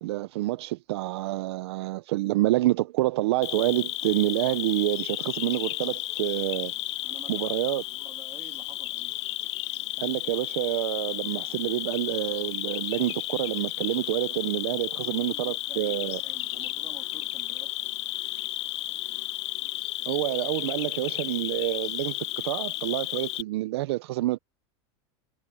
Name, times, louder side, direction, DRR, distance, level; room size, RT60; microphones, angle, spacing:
voice 1, 0.0-6.7 7.3-7.8 10.0-16.2 20.1-24.4, right 17 dB, 65° right, 0.6 m, -28 dB
Cricket, 3.4-23.4, left 17 dB, 75° left, 0.7 m, -33 dB
voice 2, 7.0-9.2 14.9-17.9, right 8 dB, 20° right, 3.0 m, -50 dB
supercardioid pair, 175°, 15 cm